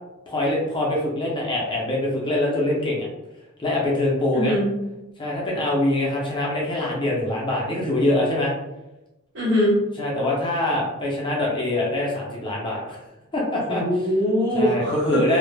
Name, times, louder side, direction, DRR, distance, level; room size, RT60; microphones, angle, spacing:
voice 1, 0.3-3.1 3.6-4.5 5.2-8.5 10.0-13.0 13.3-13.8 14.5-15.4, left 1 dB, 20° left, -3 dB, 0.4 m, -24 dB
voice 2, 4.3-4.7 9.3-9.8 13.7-15.2, equal, 55° right, -6 dB, 1.1 m, -22 dB
2.1 x 2.0 x 3.1 m, 0.98 s
head